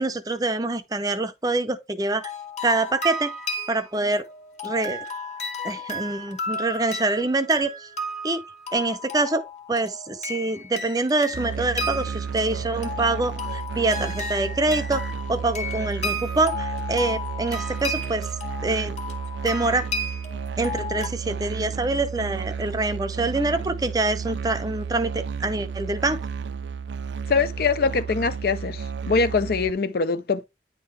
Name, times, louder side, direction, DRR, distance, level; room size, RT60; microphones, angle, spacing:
voice 1, 0.0-2.3 2.6-3.3 3.7-4.3 4.6-5.1 5.6-7.9 8.2-8.4 8.7-18.3 18.6-18.9 19.4-19.9 20.6-26.3, right 2 dB, 20° right, 0.5 m, -25 dB
sound 1, 2.1-21.1, left 2 dB, 40° left, 1.6 m, -34 dB
Musical instrument, 11.3-29.7, right 6 dB, 80° right, 0.5 m, -32 dB
voice 2, 27.3-30.4, left 4 dB, 55° left, 0.4 m, -23 dB
9.6 x 3.7 x 3.2 m
head